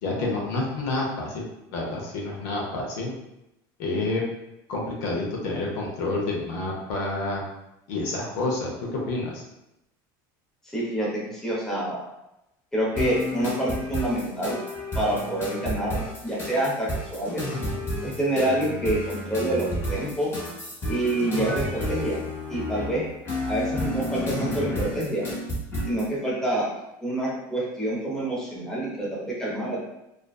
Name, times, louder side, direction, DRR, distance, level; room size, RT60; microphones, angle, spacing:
voice 1, 0.0-1.4 1.7-3.1 3.8-4.2 4.7-7.4 7.9-9.4, left 2 dB, 75° left, -2 dB, 0.7 m, -28 dB
voice 2, 10.7-12.0 12.7-14.6 14.9-17.5 18.0-20.3 20.9-22.2 22.5-23.1 23.5-25.3 25.9-26.7 27.0-29.9, right 1 dB, 5° left, -6 dB, 0.7 m, -27 dB
sound 1, 12.9-26.1, left 1 dB, 25° left, 1.1 m, -31 dB
2.4 x 2.2 x 2.3 m, 0.88 s
cardioid pair, 145°, 10 cm